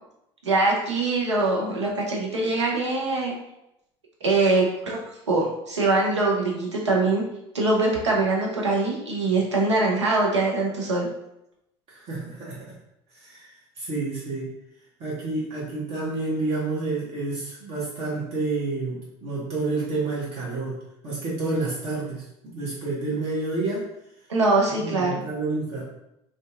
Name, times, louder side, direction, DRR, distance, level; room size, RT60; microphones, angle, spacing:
voice 1, 0.4-3.3 4.2-5.0 5.3-7.2 7.5-11.1 24.3-25.2, right 2 dB, 90° right, -2 dB, 0.5 m, -23 dB
voice 2, 11.9-12.6 13.1-13.5 13.8-14.5 15.0-20.8 21.0-23.8 24.8-25.8, right 3 dB, 45° right, -6 dB, 0.9 m, -29 dB
2.6 x 2.2 x 2.3 m, 0.84 s
figure-of-eight pair, 70°, 14 cm